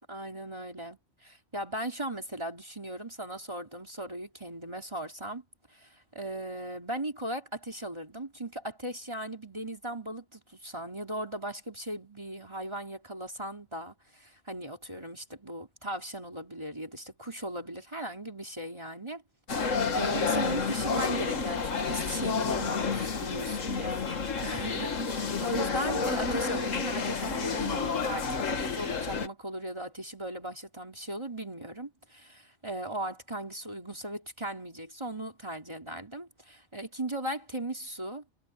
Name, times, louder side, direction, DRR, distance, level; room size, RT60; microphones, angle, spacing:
voice 1, 0.1-5.4 5.7-19.2 19.6-38.2, right 1 dB, 20° right, 3.3 m, -38 dB
sound 1, 19.5-29.3, left 5 dB, 85° left, 1.9 m, -30 dB
omnidirectional pair, 1.3 m